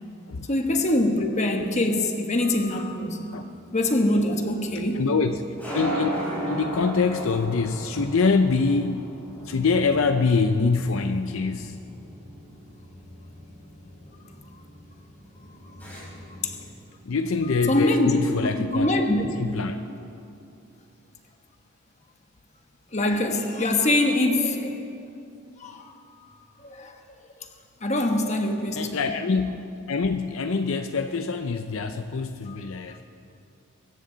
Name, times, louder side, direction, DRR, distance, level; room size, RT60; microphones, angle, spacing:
voice 1, 0.5-3.3 3.7-5.0 16.4-16.5 17.7-18.2 18.7-19.3 22.9-24.8 25.6-25.9 26.6-27.0 27.8-29.0 32.5-32.6, left 1 dB, 30° left, 4 dB, 1.3 m, -24 dB
sound 1, 2.8-16.6, equal, 5° left, 5.0 m, -37 dB
voice 2, 4.7-5.4 5.7-6.1 6.5-9.2 9.4-11.8 17.0-18.9 19.4-19.8 28.7-29.6 29.9-33.0, left 4 dB, 65° left, 8 dB, 0.5 m, -24 dB
24.0 x 14.5 x 3.9 m, 2.6 s
head